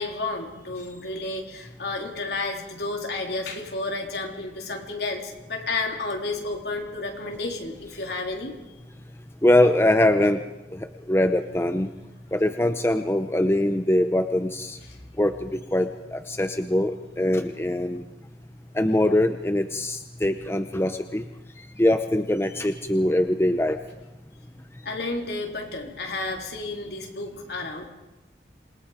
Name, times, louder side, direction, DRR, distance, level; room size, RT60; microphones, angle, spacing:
voice 1, 0.0-8.5 24.8-27.9, left 3 dB, 60° left, 2 dB, 3.7 m, -31 dB
voice 2, 9.4-10.5 10.7-11.9 12.3-14.8 15.2-18.0 18.7-21.2 21.8-23.8, left 1 dB, 15° left, 7 dB, 0.7 m, -22 dB
27.0 x 21.5 x 5.1 m, 1.0 s
head